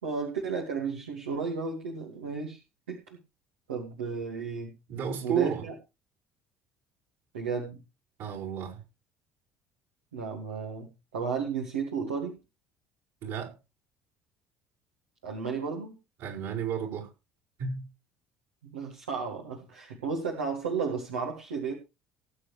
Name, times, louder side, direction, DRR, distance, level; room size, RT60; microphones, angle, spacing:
voice 1, 0.0-2.6 2.9-3.2 3.7-4.7 5.2-5.7 7.3-7.8 10.1-12.4 15.2-16.0 18.6-21.7, right 5 dB, 80° right, 0 dB, 2.0 m, -33 dB
voice 2, 4.9-5.6 8.2-8.8 13.2-13.5 16.2-17.1 17.6-17.9, right 8 dB, 60° right, -5 dB, 5.1 m, -32 dB
18.5 x 8.5 x 3.2 m, 0.28 s
figure-of-eight pair, 55°, 6 cm